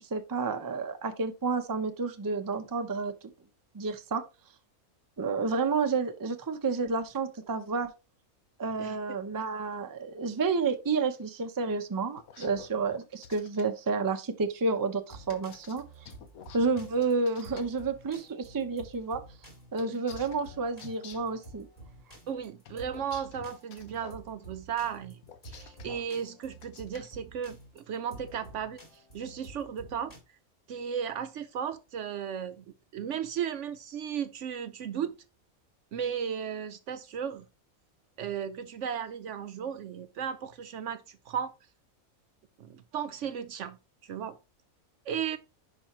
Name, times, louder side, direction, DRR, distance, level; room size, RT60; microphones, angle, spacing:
voice 1, 0.0-3.1 3.7-4.2 5.2-7.9 8.6-15.8 16.5-19.2 19.7-21.7, right 4 dB, 25° right, 0.5 m, -30 dB
sound 1, 12.2-13.6 15.3-17.6 19.8-21.4 22.6-24.2 25.2-26.1 26.5-27.1, left 8 dB, 85° left, 1.3 m, -49 dB
sound 2, 15.1-30.2, right 1 dB, 25° left, 3.1 m, -50 dB
voice 2, 22.3-25.2 25.5-30.1 30.7-32.7 32.9-35.2 35.9-37.5 38.2-41.5 42.6-43.8 44.0-44.4 45.1-45.4, right 8 dB, 70° right, 0.8 m, -35 dB
10.5 x 5.0 x 3.0 m
omnidirectional pair, 1.5 m